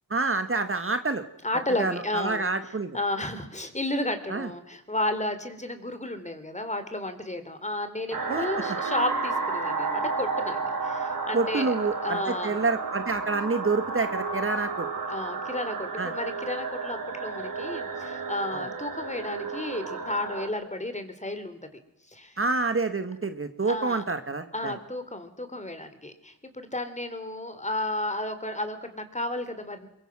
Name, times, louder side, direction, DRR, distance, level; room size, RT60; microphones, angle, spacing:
voice 1, 0.1-1.2 1.8-3.0 4.3-4.5 8.3-8.4 11.3-14.9 16.0-16.1 18.5-18.6 22.4-24.7, right 3 dB, 35° right, 9 dB, 1.7 m, -28 dB
voice 2, 1.4-2.5 2.9-11.8 12.0-12.6 15.1-21.6 22.1-22.4 23.6-24.0 24.5-29.9, left 1 dB, 20° left, 9 dB, 3.6 m, -32 dB
sound 1, 8.1-20.5, right 4 dB, 55° right, 6.6 m, -32 dB
23.0 x 22.5 x 6.2 m, 0.87 s
cardioid pair, 60°, 39 cm